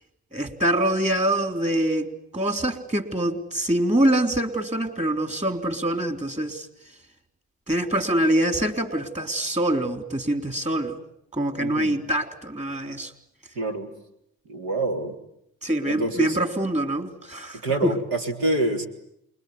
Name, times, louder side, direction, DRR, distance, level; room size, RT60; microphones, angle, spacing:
voice 1, 0.3-6.7 7.7-11.0 11.3-13.1 15.6-17.9, right 1 dB, 20° right, 7 dB, 3.7 m, -25 dB
voice 2, 11.6-12.0 13.6-13.9 14.5-15.1 15.8-16.4 17.6-18.9, right 2 dB, 85° right, 3 dB, 3.7 m, -26 dB
28.0 x 22.0 x 9.6 m, 0.76 s
supercardioid pair, 70°, 32 cm